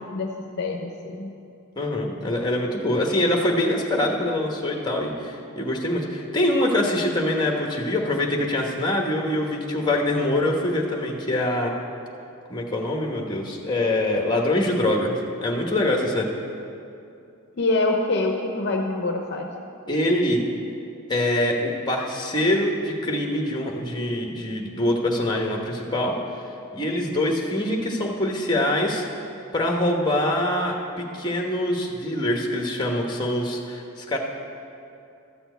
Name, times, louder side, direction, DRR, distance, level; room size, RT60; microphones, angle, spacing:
voice 1, 0.6-1.3 17.6-19.5, left 2 dB, 50° left, 2 dB, 0.7 m, -25 dB
voice 2, 1.8-11.7 12.5-16.3 19.9-20.4 21.1-26.1 26.7-29.0 29.5-34.2, left 1 dB, 20° left, 1 dB, 1.0 m, -24 dB
13.0 x 4.3 x 8.0 m, 2.6 s
head